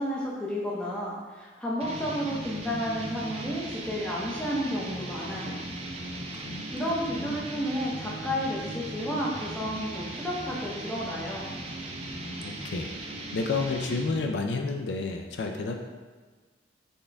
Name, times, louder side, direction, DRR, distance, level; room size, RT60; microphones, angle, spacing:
voice 1, 0.0-5.6 6.7-11.5, equal, 5° left, -5 dB, 0.7 m, -32 dB
sound 1, 1.8-14.3, right 1 dB, 35° right, 0.5 m, -38 dB
voice 2, 6.0-6.6 7.2-7.4 12.0-12.9 13.3-15.8, left 3 dB, 70° left, 3 dB, 0.4 m, -31 dB
4.3 x 3.6 x 3.4 m, 1.4 s
head